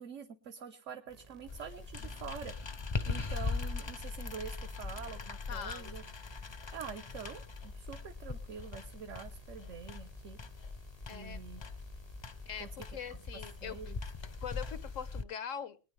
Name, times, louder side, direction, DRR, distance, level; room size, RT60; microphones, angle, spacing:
voice 1, 0.0-2.5 3.0-6.0 6.7-10.4 11.1-11.6 12.6-12.7 13.1-13.2 13.6-14.0, right 7 dB, 75° right, 1.3 m, -46 dB
sound 1, 1.1-15.0, right 3 dB, 35° right, 0.7 m, -58 dB
sound 2, 1.5-15.2, left 4 dB, 35° left, 0.4 m, -41 dB
voice 2, 5.5-6.0 11.1-11.4 12.5-13.8 14.4-15.9, left 7 dB, 85° left, 1.4 m, -42 dB
22.0 x 9.7 x 3.3 m
omnidirectional pair, 1.3 m